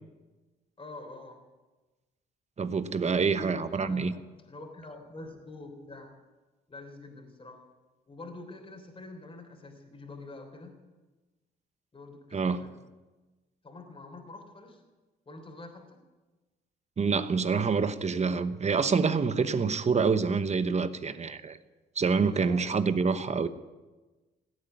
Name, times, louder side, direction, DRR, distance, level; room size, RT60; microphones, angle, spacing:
voice 1, 0.8-1.4 3.1-6.1 6.7-7.6 8.1-10.8 11.9-12.8 13.6-14.8 15.2-16.0 22.2-22.7, left 2 dB, 25° left, 3.4 m, -46 dB
voice 2, 2.6-4.1 12.3-12.6 17.0-21.6 22.0-23.5, right 5 dB, 35° right, 0.9 m, -27 dB
17.5 x 8.7 x 9.4 m
cardioid pair, 90°, 20 cm